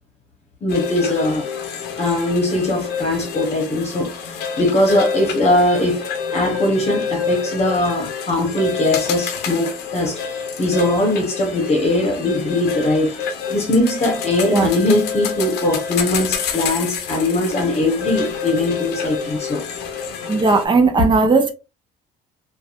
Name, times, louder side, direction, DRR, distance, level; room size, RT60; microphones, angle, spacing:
voice 1, 0.6-1.5 2.0-6.0 6.3-10.2 10.6-13.1 13.5-19.6, left 1 dB, 40° left, 1.0 m, -20 dB
sound 1, 0.7-20.7, left 6 dB, 85° left, 0.6 m, -27 dB
voice 2, 20.3-21.5, right 4 dB, 25° right, 0.6 m, -16 dB
3.0 x 2.3 x 2.4 m
cardioid pair, 110°, 17 cm